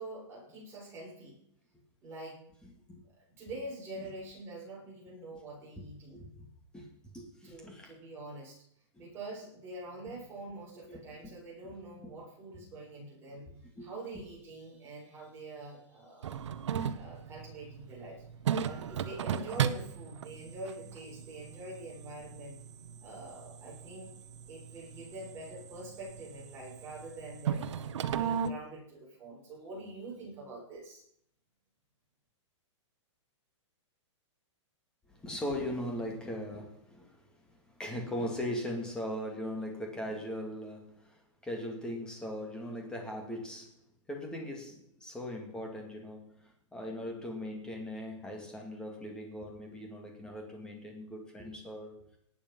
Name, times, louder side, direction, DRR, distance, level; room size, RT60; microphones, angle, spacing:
voice 1, 0.0-1.4 2.0-2.4 3.4-6.2 7.4-8.6 9.0-16.4 16.9-18.2 18.6-22.6 23.0-24.1 24.5-27.7 28.1-31.0, right 2 dB, 15° right, -4 dB, 6.6 m, -45 dB
voice 2, 2.6-3.0 4.0-4.1 6.1-6.5 6.7-6.9 7.1-7.9 10.9-11.0 11.2-11.3 12.0-12.1 13.8-13.9 35.1-43.8 44.1-52.0, left 1 dB, 5° left, 1 dB, 2.4 m, -39 dB
sound 1, 16.2-28.5, right 8 dB, 65° right, 1.1 m, -37 dB
18.5 x 9.1 x 5.5 m, 0.70 s
hypercardioid pair, 165°, 16 cm